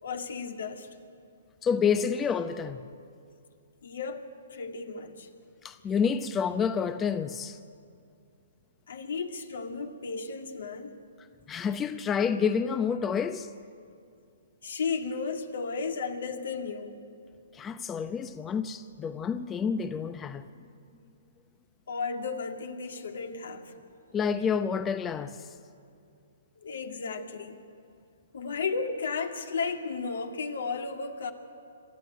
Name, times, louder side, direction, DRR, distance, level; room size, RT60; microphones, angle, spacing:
voice 1, 0.0-0.9 3.8-4.2 4.5-5.3 8.9-10.9 14.6-17.0 21.9-23.7 26.6-27.6 28.3-31.3, left 5 dB, 75° left, 2.2 m, -34 dB
voice 2, 1.6-2.8 5.6-7.6 11.5-13.5 17.5-20.5 24.1-25.5, left 6 dB, 15° left, 0.6 m, -29 dB
26.5 x 12.5 x 9.2 m
hypercardioid pair, 135°, 0 cm